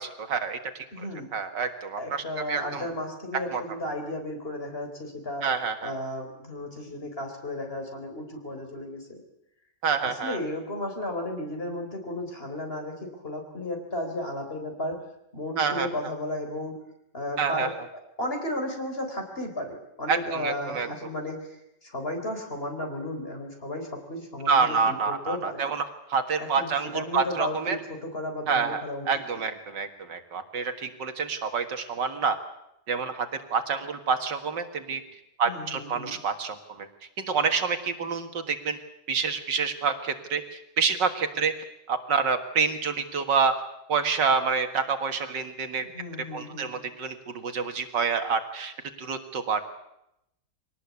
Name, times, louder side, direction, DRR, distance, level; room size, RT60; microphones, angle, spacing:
voice 1, 0.0-1.1 1.3-2.8 3.5-3.6 5.4-5.9 9.8-10.4 15.6-15.9 17.4-17.7 20.1-20.9 24.5-27.8 28.5-32.4 32.9-35.0 35.4-36.9 37.2-38.8 39.1-41.5 41.9-43.6 43.9-45.8 46.3-49.6, right 5 dB, 75° right, 7 dB, 2.4 m, -28 dB
voice 2, 0.9-1.3 2.0-5.4 5.8-9.2 10.0-15.0 15.3-16.8 17.1-17.7 18.2-25.7 26.4-29.1 29.3-29.4 35.4-36.2 45.9-46.7, left 1 dB, 30° left, 4 dB, 4.3 m, -34 dB
23.5 x 18.5 x 8.3 m, 0.82 s
omnidirectional pair, 1.9 m